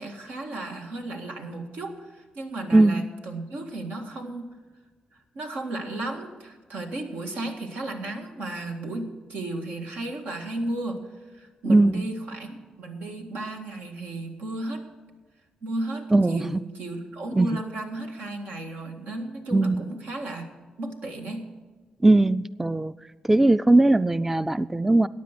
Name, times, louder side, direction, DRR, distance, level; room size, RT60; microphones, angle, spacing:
voice 1, 0.0-4.5 5.3-11.0 11.3-14.9 15.6-20.5 20.8-21.5, right 2 dB, 85° right, 2 dB, 1.8 m, -34 dB
voice 2, 2.7-3.0 11.7-12.1 16.1-16.6 17.3-17.5 19.5-19.8 22.0-22.9 23.2-25.1, right 2 dB, 10° right, 15 dB, 0.3 m, -19 dB
14.5 x 9.6 x 5.9 m, 1.3 s
cardioid pair, 75°, 3 cm